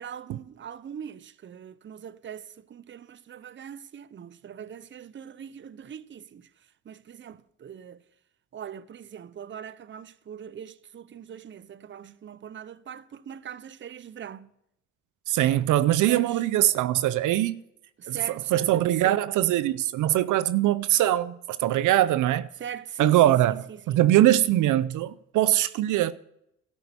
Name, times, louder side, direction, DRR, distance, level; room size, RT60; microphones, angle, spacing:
voice 1, 0.0-8.0 8.5-14.5 16.1-16.5 18.0-19.4 22.6-24.1, right 8 dB, 40° right, 0.7 m, -41 dB
voice 2, 15.3-17.6 18.1-18.2 18.5-22.5 23.0-23.5 23.9-26.1, right 13 dB, 80° right, 0.6 m, -22 dB
13.0 x 11.0 x 6.9 m
cardioid pair, 90°, 30 cm